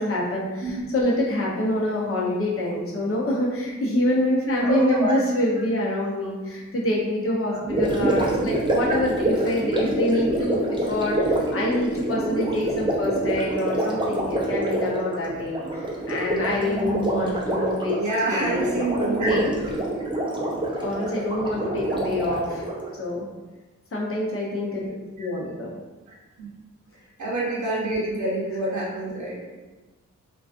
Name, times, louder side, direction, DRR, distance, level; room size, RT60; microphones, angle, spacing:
voice 1, 0.0-18.0 18.3-18.8 19.3-19.4 20.8-22.7 23.0-23.3 23.9-24.8 25.2-25.8, left 1 dB, 45° left, -4 dB, 0.7 m, -26 dB
voice 2, 4.6-5.2 7.5-7.6 16.6-17.4 18.0-19.5 24.8-24.9 25.2-25.3 26.1-26.5 27.2-29.3, right 2 dB, 70° right, -4 dB, 0.8 m, -27 dB
Gurgling, 7.6-22.9, right 1 dB, 15° right, 0.5 m, -26 dB
2.4 x 2.3 x 2.4 m, 1.2 s
wide cardioid pair, 75°, 30 cm